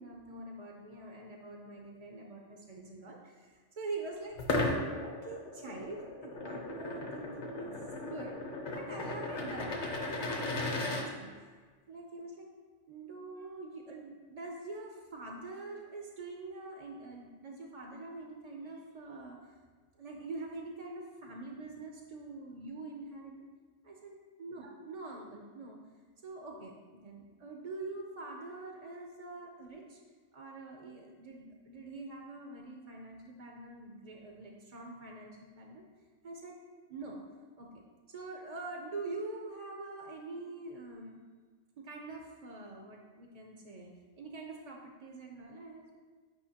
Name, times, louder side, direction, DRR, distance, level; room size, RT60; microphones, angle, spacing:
voice 1, 0.0-4.4 5.0-7.8 8.1-8.3 8.7-11.3 11.9-12.5 12.9-19.5 20.0-23.5 23.8-25.8 26.2-30.0 30.3-35.8 36.2-36.6 36.9-37.2 37.6-37.7 38.1-41.2 41.8-43.9 44.2-46.0, right 3 dB, 45° right, 1 dB, 0.5 m, -45 dB
sound 1, 4.4-11.0, left 2 dB, 45° left, 0.9 m, -36 dB
9.1 x 5.4 x 2.9 m, 1.5 s
omnidirectional pair, 1.3 m